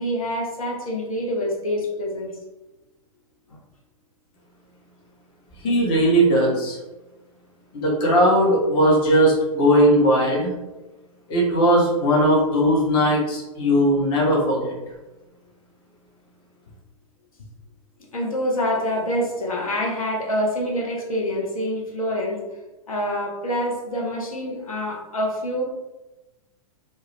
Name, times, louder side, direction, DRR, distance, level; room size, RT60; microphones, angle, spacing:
voice 1, 0.0-2.3 3.5-3.6 18.1-22.4 22.9-25.6, equal, 70° left, -2 dB, 0.7 m, -26 dB
voice 2, 5.6-6.8 7.7-10.5 11.3-14.7, equal, 25° left, -3 dB, 0.7 m, -18 dB
2.2 x 2.1 x 3.1 m, 1.1 s
figure-of-eight pair, 105°, 19 cm